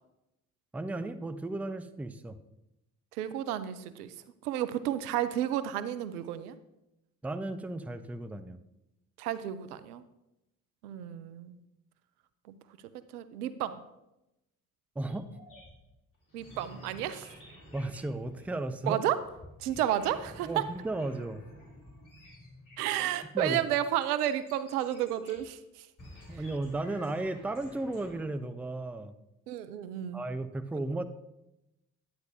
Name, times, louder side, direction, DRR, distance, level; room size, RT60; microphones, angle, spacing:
voice 1, 0.7-2.4 7.2-8.6 15.0-15.3 17.7-19.0 20.5-21.4 23.3-23.6 26.3-29.1 30.1-31.0, right 2 dB, 5° right, 11 dB, 0.4 m, -34 dB
voice 2, 3.1-4.1 4.4-6.5 9.2-10.0 10.8-11.6 12.5-12.6 13.1-13.8 16.3-17.3 18.9-19.2 19.6-20.7 22.8-25.9 26.3-26.4 29.5-30.2, right 11 dB, 80° right, 13 dB, 0.6 m, -32 dB
sound 1, 15.1-25.5 26.0-28.2, left 1 dB, 45° left, 3.2 m, -52 dB
9.4 x 8.9 x 2.7 m, 0.91 s
figure-of-eight pair, 45°, 45 cm